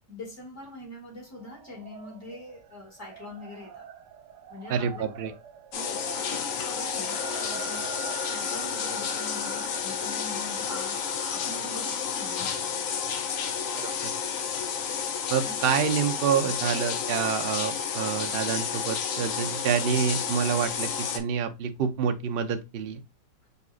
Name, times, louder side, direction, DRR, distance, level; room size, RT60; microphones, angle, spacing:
voice 1, 0.1-3.9 4.5-5.1 5.7-7.9 8.2-12.9 15.4-15.6, left 2 dB, 45° left, 2.3 m, -43 dB
sound 1, 1.4-13.8, right 8 dB, 80° right, 1.3 m, -44 dB
voice 2, 4.7-5.3 13.7-14.1 15.3-23.0, right 7 dB, 55° right, 0.6 m, -27 dB
sound 2, 5.7-21.2, left 7 dB, 60° left, 1.0 m, -31 dB
6.8 x 2.8 x 2.4 m
omnidirectional pair, 1.8 m